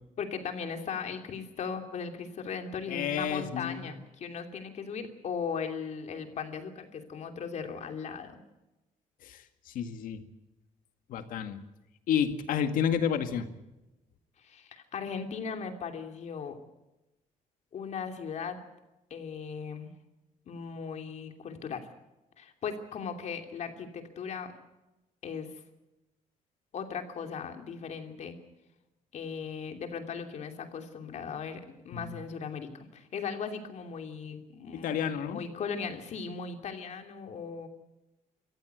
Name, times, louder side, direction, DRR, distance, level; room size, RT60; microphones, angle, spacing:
voice 1, 0.2-8.4 14.4-16.6 17.7-18.6 19.1-19.9 20.5-21.8 22.4-24.5 25.2-25.5 26.7-28.4 29.1-35.0 35.3-37.7, left 6 dB, 55° left, 5 dB, 2.9 m, -38 dB
voice 2, 2.9-3.9 9.2-9.4 9.7-10.2 11.1-11.6 12.1-13.5 31.9-32.2 34.8-35.4, left 8 dB, 85° left, 8 dB, 2.0 m, -30 dB
26.0 x 14.5 x 8.0 m, 0.99 s
cardioid pair, 130°, 14 cm